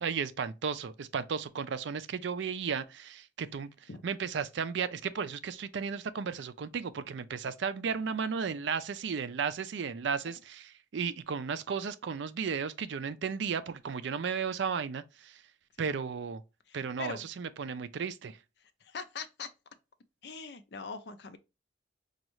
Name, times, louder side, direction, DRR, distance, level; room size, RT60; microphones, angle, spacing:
voice 1, 0.0-15.4 15.8-16.4 16.7-18.4, right 6 dB, 65° right, 0.4 m, -34 dB
voice 2, 16.7-17.2 18.8-19.5 20.2-21.4, left 5 dB, 60° left, 0.5 m, -41 dB
5.2 x 2.3 x 3.0 m
head